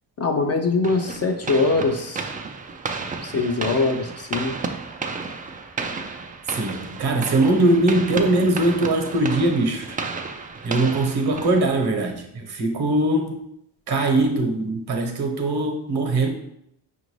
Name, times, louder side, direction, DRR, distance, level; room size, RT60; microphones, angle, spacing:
voice 1, 0.2-2.3 3.2-4.5, left 3 dB, 35° left, 5 dB, 0.5 m, -22 dB
sound 1, 0.8-12.1, right 4 dB, 20° right, 0.3 m, -33 dB
voice 2, 6.5-10.0 10.6-13.4 13.9-16.3, right 2 dB, 60° right, 4 dB, 1.0 m, -21 dB
5.0 x 2.6 x 3.1 m, 0.75 s
cardioid pair, 80°, 44 cm